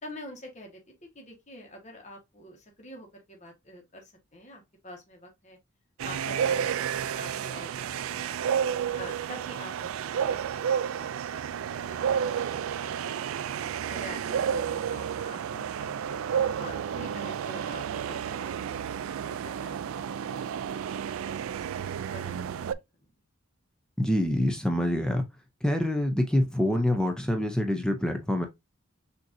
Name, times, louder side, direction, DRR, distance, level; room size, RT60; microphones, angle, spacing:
voice 1, 0.0-5.6 6.0-8.6 8.9-13.5 13.9-16.2 16.6-18.9 19.2-19.9 20.2-21.5 22.1-22.7 23.0-23.1, left 1 dB, 35° left, 1.4 m, -47 dB
sound 1, 6.0-22.7, right 8 dB, 75° right, 0.3 m, -31 dB
voice 2, 24.0-25.3 25.6-28.5, left 1 dB, 5° left, 0.6 m, -26 dB
6.2 x 3.0 x 2.6 m
head